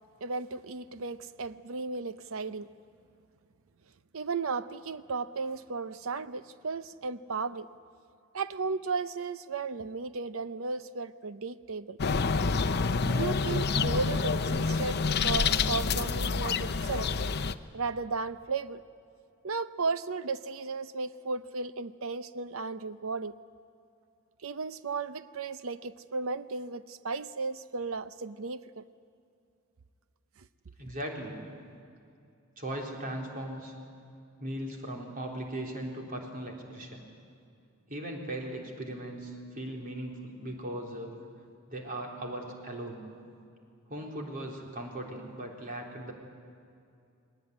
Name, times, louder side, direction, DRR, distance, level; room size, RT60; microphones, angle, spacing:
voice 1, 0.2-2.7 4.1-7.7 8.3-12.0 13.0-17.1 17.7-18.8 19.4-23.3 24.4-28.8, right 4 dB, 70° right, 13 dB, 0.7 m, -35 dB
sound 1, 12.0-17.5, left 4 dB, 50° left, 0.7 m, -28 dB
voice 2, 30.8-31.4 32.6-33.7 34.4-37.1 37.9-41.1 41.7-43.1 43.9-46.1, right 1 dB, 40° right, 0 dB, 3.9 m, -38 dB
20.5 x 19.0 x 9.8 m, 2.5 s
head